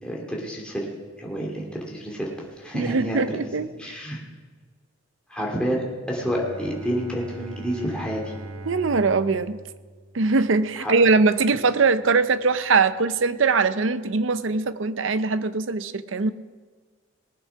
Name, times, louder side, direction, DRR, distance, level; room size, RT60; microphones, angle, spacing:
voice 1, 0.0-0.9 1.2-2.3 2.6-3.2 3.6-4.2 5.3-8.3 10.8-10.9, equal, 5° left, -3 dB, 2.4 m, -29 dB
voice 2, 2.7-4.0 8.7-9.6 10.1-16.3, right 4 dB, 65° right, 13 dB, 0.6 m, -22 dB
Bowed string instrument, 6.1-11.8, right 2 dB, 85° right, 1.2 m, -41 dB
19.0 x 8.3 x 5.8 m, 1.5 s
head